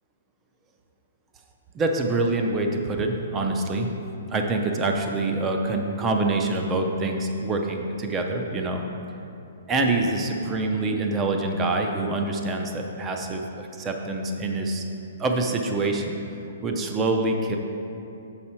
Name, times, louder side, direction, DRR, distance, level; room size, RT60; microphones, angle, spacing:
voice 1, 1.7-3.9 4.3-8.8 9.7-14.8 15.2-16.2 16.6-17.6, right 2 dB, 10° right, 3 dB, 0.4 m, -25 dB
7.4 x 5.6 x 4.4 m, 2.8 s
hypercardioid pair, 175°, 0 cm